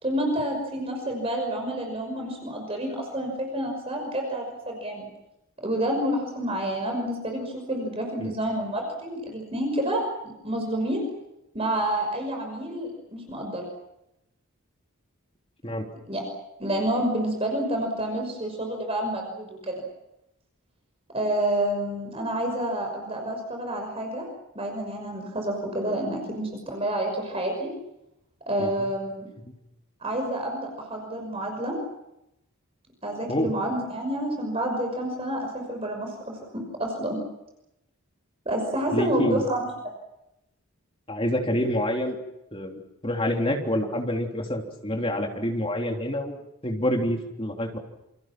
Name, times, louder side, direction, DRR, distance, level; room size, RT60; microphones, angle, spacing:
voice 1, 0.0-5.1 5.6-10.0 10.4-11.0 11.5-13.7 16.1-16.2 16.6-19.8 21.1-24.3 24.5-27.7 28.5-29.3 30.0-31.8 33.0-37.2 38.5-39.7, right 1 dB, 25° right, 2 dB, 5.8 m, -29 dB
voice 2, 38.9-39.5 41.1-42.2 42.5-47.8, left 1 dB, 25° left, 1 dB, 3.4 m, -27 dB
29.0 x 27.5 x 6.1 m, 0.87 s
head